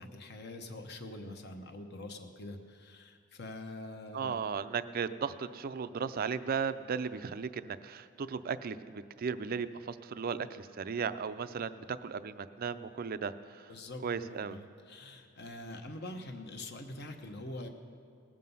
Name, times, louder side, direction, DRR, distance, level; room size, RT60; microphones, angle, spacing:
voice 1, 0.0-4.4 13.7-17.7, left 2 dB, 55° left, 5 dB, 1.0 m, -45 dB
voice 2, 4.1-13.7 14.0-14.6, right 6 dB, 45° right, 13 dB, 0.4 m, -36 dB
19.0 x 7.5 x 5.5 m, 2.2 s
head